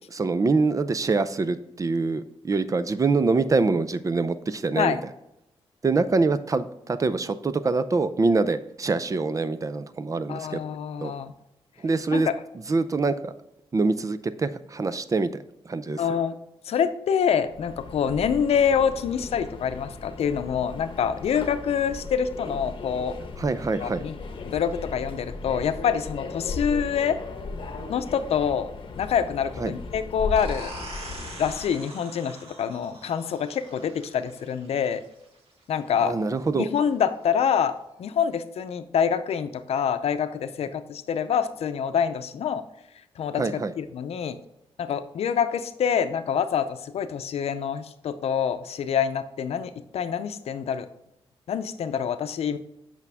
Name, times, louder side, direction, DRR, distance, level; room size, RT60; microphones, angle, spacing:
voice 1, 0.1-5.0 5.8-10.6 11.0-11.1 11.8-12.3 12.7-13.3 13.7-15.3 15.7-16.0 23.4-24.0 29.6-29.7 36.0-36.7 43.4-43.7, right 3 dB, 35° right, 13 dB, 0.5 m, -25 dB
voice 2, 10.3-11.3 12.1-12.3 16.0-16.3 16.6-23.2 23.8-24.1 24.4-27.2 27.9-28.7 29.0-30.7 31.4-35.0 35.7-36.1 36.6-42.6 43.2-44.4 44.8-50.9 51.5-52.6, left 7 dB, 85° left, 11 dB, 0.6 m, -26 dB
Subway metro underground, 17.4-31.8, left 3 dB, 55° left, 1.0 m, -37 dB
sound 1, 30.4-35.8, right 1 dB, 70° right, 2.3 m, -43 dB
8.3 x 5.9 x 3.4 m, 0.84 s
wide cardioid pair, 105°, 10 cm